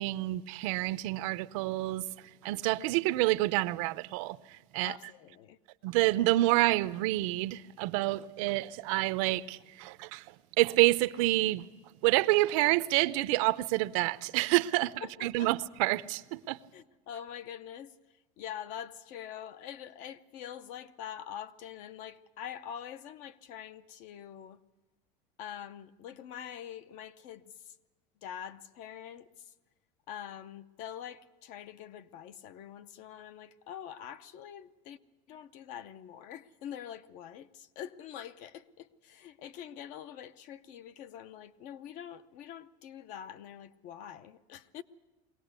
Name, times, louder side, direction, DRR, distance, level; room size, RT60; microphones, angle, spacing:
voice 1, 0.0-5.0 5.8-11.6 12.0-16.6, right 19 dB, 60° right, 0.6 m, -28 dB
voice 2, 4.8-5.6 15.0-15.5 16.7-17.9 18.4-24.6 25.4-27.8 28.2-29.5 30.1-35.0 35.3-44.8, left 9 dB, 45° left, 0.7 m, -45 dB
22.0 x 17.5 x 8.1 m
cardioid pair, 175°, 19 cm